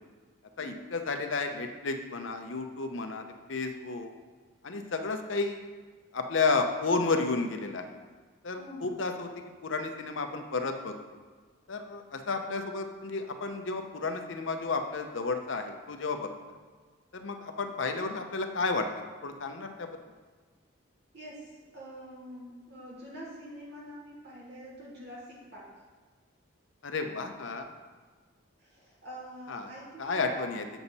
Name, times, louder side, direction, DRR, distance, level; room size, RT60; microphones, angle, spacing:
voice 1, 0.6-4.1 4.6-5.7 6.1-7.9 8.4-9.3 9.6-10.9 11.7-16.3 17.1-18.9 19.2-19.9 26.8-27.7 29.5-29.7 30.0-30.6, left 3 dB, 60° left, 5 dB, 0.7 m, -32 dB
voice 2, 8.6-8.9 21.1-25.7 28.6-30.7, equal, 50° right, -6 dB, 2.6 m, -45 dB
7.1 x 7.0 x 4.1 m, 1.5 s
head